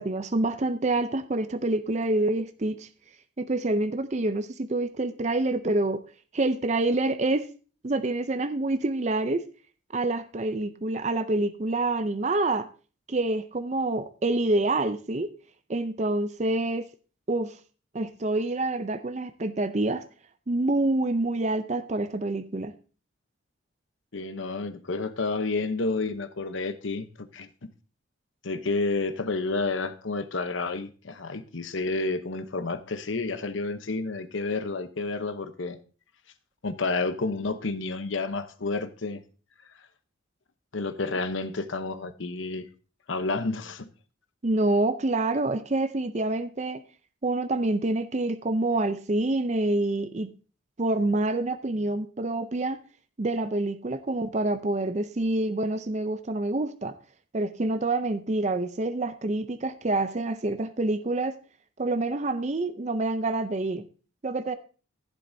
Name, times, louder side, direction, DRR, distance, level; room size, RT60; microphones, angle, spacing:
voice 1, 0.0-2.9 3.4-6.0 6.3-7.5 7.8-9.4 9.9-12.7 13.1-15.3 15.7-16.9 17.3-17.6 17.9-20.0 20.5-22.7 44.4-46.8 47.2-50.3 50.8-52.8 53.2-56.9 57.3-61.4 61.8-63.8 64.2-64.5, right 2 dB, 35° right, 0.5 m, -27 dB
voice 2, 24.1-27.7 28.4-35.8 36.6-39.2 40.7-42.7 43.1-43.9, left 3 dB, 70° left, 0.9 m, -30 dB
15.0 x 7.6 x 2.7 m
head